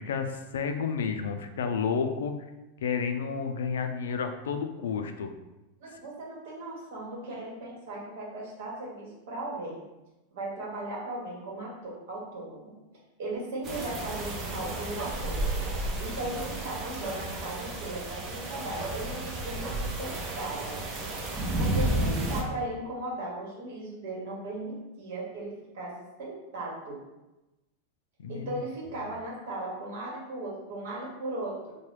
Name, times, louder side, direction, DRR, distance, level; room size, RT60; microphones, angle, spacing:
voice 1, 0.0-2.4 2.8-5.3 28.2-28.6, left 6 dB, 85° left, 7 dB, 0.3 m, -31 dB
voice 2, 5.8-9.8 10.3-12.7 13.2-15.6 16.0-20.9 21.6-25.9 26.2-27.0 28.3-31.5, right 1 dB, 70° right, -3 dB, 1.2 m, -37 dB
sound 1, 13.6-22.4, right 1 dB, 35° right, 0.7 m, -32 dB
3.0 x 2.2 x 3.2 m, 1.0 s
supercardioid pair, 125°, 0 cm